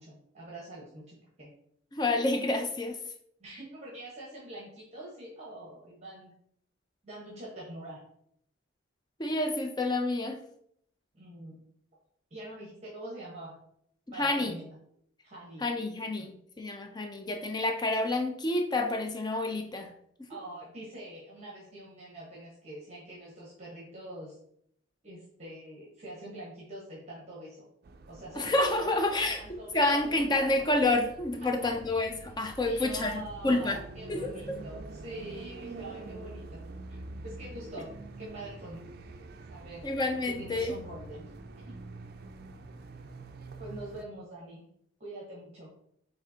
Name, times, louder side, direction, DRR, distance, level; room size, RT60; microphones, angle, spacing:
voice 1, 0.0-1.5 3.4-6.3 7.0-8.0 11.1-11.6 12.3-13.5 14.1-14.7 15.2-15.7 16.2-16.3 16.7-16.8 20.3-24.4 25.0-27.7 28.1-30.6 31.4-31.5 32.6-36.6 36.9-38.9 39.5-39.9 40.4-41.3 41.6-41.7 43.6-44.6 45.0-45.7, right 1 dB, 35° right, -5 dB, 1.1 m, -45 dB
voice 2, 1.9-3.0 9.2-10.4 14.2-14.5 15.6-19.9 28.4-33.8 34.1-34.6 39.8-40.7, left 2 dB, 20° left, 5 dB, 0.4 m, -29 dB
sound 1, 27.8-44.0, right 2 dB, 50° right, 0.4 m, -46 dB
5.1 x 3.3 x 2.7 m, 0.69 s
head